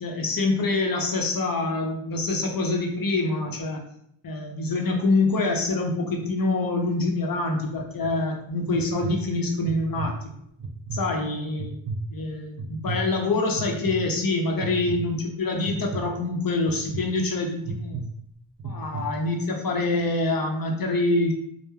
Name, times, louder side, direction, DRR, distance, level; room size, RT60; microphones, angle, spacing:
voice 1, 0.0-3.8 4.2-10.4 10.9-11.7 12.1-18.0 18.6-21.3, left 2 dB, 45° left, 2 dB, 0.7 m, -25 dB
sound 1, 7.7-8.1 8.7-9.1 9.6-10.1 10.6-11.0 11.6-12.0 12.6-13.0 13.6-13.9 14.6-15.0 15.7-16.0 16.7-17.0 17.6-18.0 18.6-19.0, right 4 dB, 45° right, 0.5 m, -32 dB
3.1 x 2.1 x 2.2 m, 0.71 s
cardioid pair, 45°, 48 cm